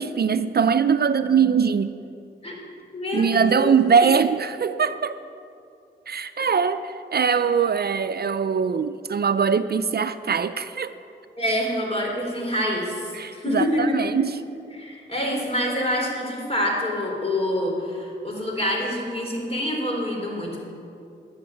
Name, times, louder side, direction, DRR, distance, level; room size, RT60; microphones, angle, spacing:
voice 1, 0.0-2.0 3.1-5.2 6.1-10.9 13.1-14.4, right 6 dB, 55° right, 11 dB, 0.5 m, -22 dB
voice 2, 2.9-3.8 11.4-14.0 14.7-20.6, left 1 dB, 30° left, -1 dB, 3.7 m, -26 dB
11.5 x 7.8 x 7.6 m, 2.5 s
cardioid pair, 50°, 19 cm